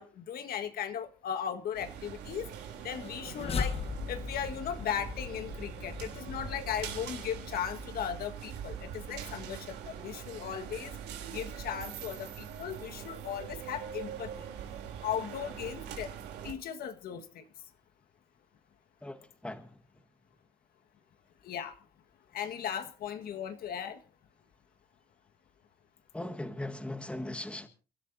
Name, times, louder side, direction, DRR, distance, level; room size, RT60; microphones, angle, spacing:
voice 1, 0.0-2.5 2.8-3.7 4.1-10.9 11.3-14.5 15.0-16.2 16.4-17.4 21.4-21.8 22.3-24.0, left 8 dB, 65° left, 1.7 m, -37 dB
sound 1, 1.7-16.5, right 8 dB, 85° right, 3.4 m, -43 dB
sound 2, 2.9-8.2, left 6 dB, 35° left, 1.2 m, -39 dB
voice 2, 26.1-27.7, left 1 dB, 5° left, 1.6 m, -38 dB
29.5 x 13.0 x 2.7 m
cardioid pair, 110°, 17 cm